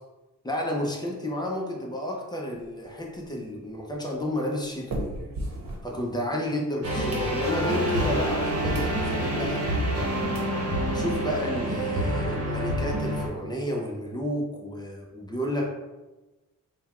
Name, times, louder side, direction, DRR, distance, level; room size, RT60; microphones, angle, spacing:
voice 1, 0.4-5.1 5.8-9.6 10.9-15.7, equal, 10° left, -1 dB, 0.7 m, -31 dB
sound 1, 2.5-6.5 6.8-7.8 8.3-8.4 8.7-9.0 9.4-9.5 10.0-10.1 10.3-10.5 11.0-11.1 11.2-11.4 11.7-11.8 12.1-13.2, right 1 dB, 85° right, 1.2 m, -39 dB
sound 2, 6.8-13.3, equal, 45° right, 1.1 m, -27 dB
3.8 x 2.3 x 4.3 m, 1.1 s
wide cardioid pair, 125°, 33 cm